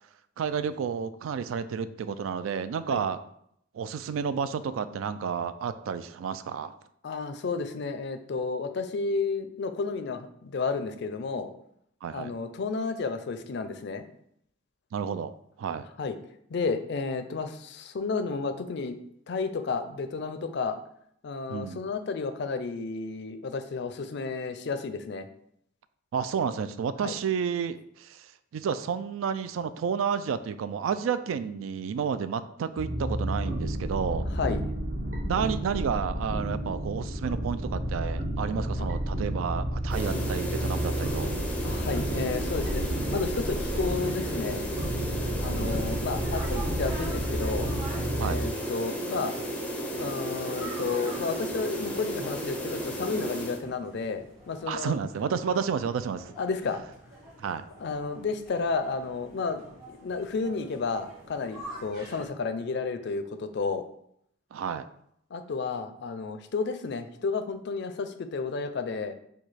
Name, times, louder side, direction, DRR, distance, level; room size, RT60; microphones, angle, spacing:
voice 1, 0.4-3.2 3.7-6.7 12.0-12.3 14.9-15.3 15.6-15.9 21.5-21.8 26.1-34.2 35.2-41.3 45.4-45.8 48.2-48.4 54.7-56.3 57.4-57.7 64.5-64.9, right 7 dB, 85° right, 13 dB, 0.3 m, -31 dB
voice 2, 7.0-11.5 12.1-14.0 16.0-16.1 16.5-19.0 19.3-20.8 21.2-25.3 27.0-27.1 34.3-34.6 38.8-38.9 41.6-44.6 45.4-47.7 48.2-49.3 50.0-55.0 56.4-56.8 57.8-63.8 65.3-69.1, left 4 dB, 60° left, 9 dB, 0.4 m, -32 dB
sound 1, 32.8-48.5, right 1 dB, 40° right, 0.9 m, -31 dB
sound 2, 39.9-53.6, right 1 dB, 5° left, 0.5 m, -34 dB
sound 3, 42.5-62.3, right 1 dB, 20° right, 1.5 m, -48 dB
4.7 x 2.3 x 4.1 m, 0.70 s
head